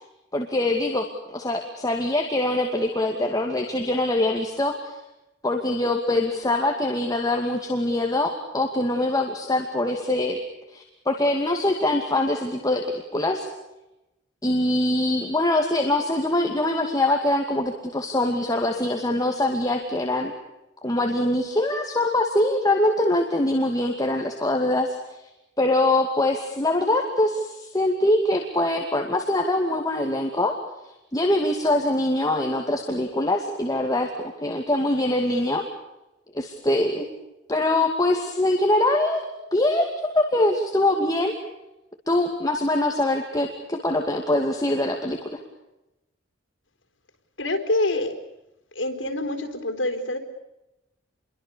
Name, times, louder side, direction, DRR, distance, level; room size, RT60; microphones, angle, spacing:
voice 1, 0.3-4.9 5.4-10.4 10.7-12.8 13.1-13.5 14.4-20.3 20.8-25.0 25.6-30.6 31.1-35.6 36.3-37.1 37.5-39.2 39.5-41.3 42.1-45.4, left 1 dB, 20° left, 2 dB, 2.4 m, -23 dB
voice 2, 47.4-48.1 48.8-50.2, left 2 dB, 85° left, 6 dB, 4.0 m, -26 dB
29.0 x 23.0 x 7.0 m, 0.94 s
head